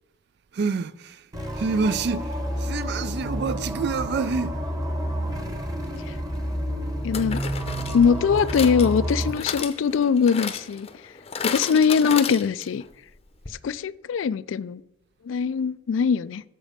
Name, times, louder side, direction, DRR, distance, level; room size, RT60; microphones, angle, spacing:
voice 1, 0.5-1.1 1.6-2.3 2.6-4.5, right 4 dB, 60° right, 0.4 m, -27 dB
sound 1, 1.3-9.3, equal, 20° right, 1.1 m, -30 dB
sound 2, 5.8-6.0 7.1-12.9 13.2-13.3 13.5-13.6, left 6 dB, 30° left, 0.7 m, -33 dB
voice 2, 7.0-7.4 7.9-10.9 11.4-12.8 13.5-14.8 15.2-16.4, left 6 dB, 80° left, 0.3 m, -22 dB
7.3 x 6.8 x 5.0 m
head